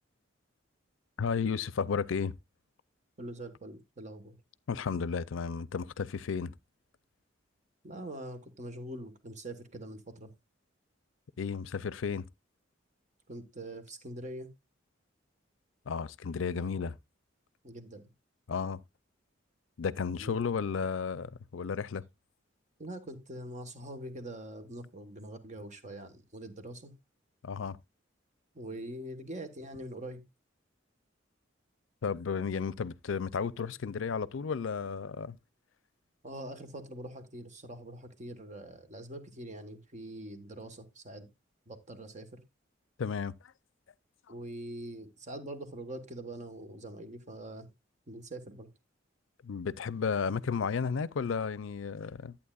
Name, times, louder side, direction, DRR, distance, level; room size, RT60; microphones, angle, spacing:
voice 1, 1.2-2.3 4.7-6.5 11.4-12.3 15.9-17.0 18.5-18.8 19.8-22.0 27.4-27.8 32.0-35.4 43.0-43.3 49.4-52.4, left 6 dB, 80° left, 0.5 m, -33 dB
voice 2, 3.2-4.4 7.8-10.3 13.3-14.5 17.6-18.1 20.2-20.4 22.8-26.9 28.5-30.2 36.2-41.3 41.7-42.4 44.3-47.7 48.1-48.7, right 1 dB, 40° right, 1.3 m, -43 dB
11.0 x 8.7 x 2.3 m
head